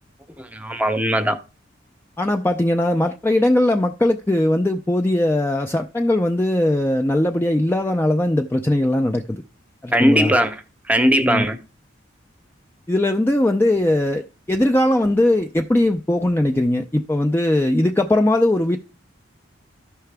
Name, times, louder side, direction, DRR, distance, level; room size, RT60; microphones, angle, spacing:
voice 1, 0.5-1.4 9.9-10.6 10.9-11.6, equal, 10° right, 0.7 m, -18 dB
voice 2, 2.2-9.4 9.8-10.3 11.2-11.5 12.9-18.8, left 1 dB, 10° left, 0.4 m, -19 dB
13.0 x 5.7 x 3.4 m
head